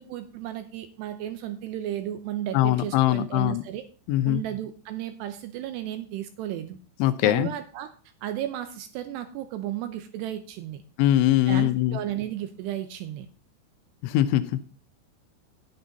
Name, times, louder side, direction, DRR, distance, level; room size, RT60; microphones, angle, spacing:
voice 1, 0.0-3.8 4.3-6.8 7.2-7.9 8.2-10.8 11.5-13.3, right 12 dB, 80° right, 9 dB, 2.5 m, -34 dB
voice 2, 2.5-3.6 4.1-4.4 7.0-7.5 11.0-12.0 14.0-14.7, left 14 dB, 80° left, 11 dB, 3.1 m, -22 dB
10.5 x 8.8 x 4.0 m, 0.37 s
omnidirectional pair, 5.6 m